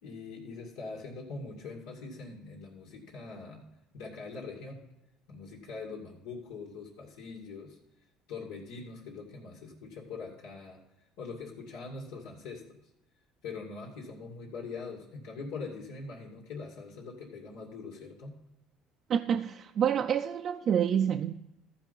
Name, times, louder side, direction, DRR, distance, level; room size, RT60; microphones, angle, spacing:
voice 1, 0.0-3.7 3.9-4.8 5.3-7.8 8.3-10.8 11.2-12.8 13.4-18.4, left 4 dB, 80° left, 2.4 m, -43 dB
voice 2, 19.1-21.3, right 8 dB, 45° right, 0.5 m, -28 dB
14.5 x 4.9 x 5.4 m
supercardioid pair, 100°, 0 cm